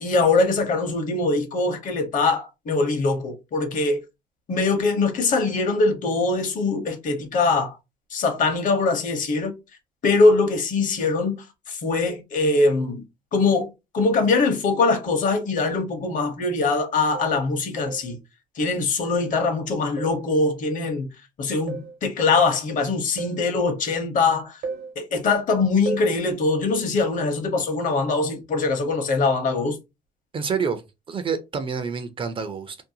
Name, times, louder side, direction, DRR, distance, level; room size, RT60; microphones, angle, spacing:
voice 1, 0.0-4.0 4.5-7.8 8.1-9.5 10.0-13.0 13.3-18.2 18.6-21.1 21.4-24.6 25.0-29.8, left 3 dB, 50° left, 0.8 m, -22 dB
sound 1, 16.1-16.2 17.1-17.5 17.9-18.2 19.2-19.5 20.0-20.3 21.7-22.0 23.2-23.5 24.6-24.9 25.9-26.2, right 4 dB, 75° right, 0.9 m, -34 dB
voice 2, 30.3-32.8, right 6 dB, 30° right, 0.4 m, -28 dB
2.6 x 2.2 x 2.7 m
cardioid pair, 110°, 17 cm